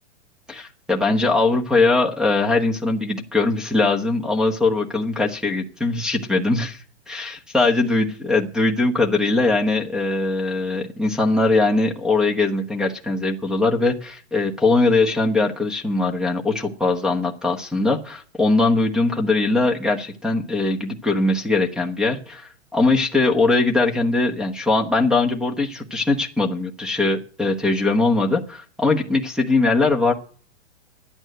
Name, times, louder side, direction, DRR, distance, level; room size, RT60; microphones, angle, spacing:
voice 1, 0.5-6.8 7.1-30.1, left 3 dB, ahead, 7 dB, 1.1 m, -21 dB
11.5 x 8.9 x 7.8 m, 0.43 s
hypercardioid pair, 140°, 36 cm